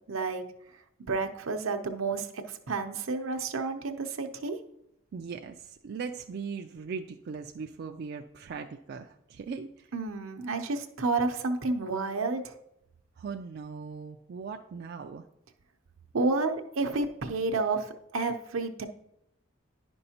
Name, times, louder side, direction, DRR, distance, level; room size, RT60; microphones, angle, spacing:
voice 1, 0.1-0.4 1.1-4.6 9.9-12.6 16.1-18.9, right 3 dB, 80° right, 6 dB, 0.7 m, -30 dB
voice 2, 5.1-9.9 13.2-15.2, right 5 dB, 50° right, 4 dB, 0.3 m, -39 dB
10.5 x 5.3 x 2.8 m, 0.80 s
head